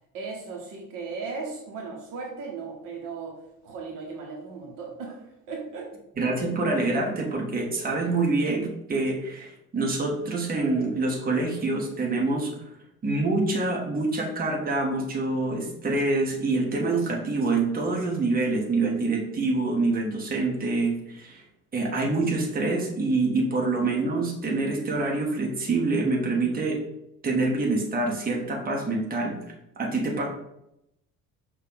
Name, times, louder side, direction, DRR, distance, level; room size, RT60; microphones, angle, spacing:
voice 1, 0.1-5.9, right 4 dB, 50° right, 0 dB, 1.0 m, -37 dB
voice 2, 6.2-12.5 13.0-21.4 21.7-26.8 27.2-29.4 29.8-30.3, right 3 dB, 20° right, 0 dB, 1.0 m, -26 dB
5.4 x 2.4 x 3.9 m, 0.83 s
figure-of-eight pair, 60°, 43 cm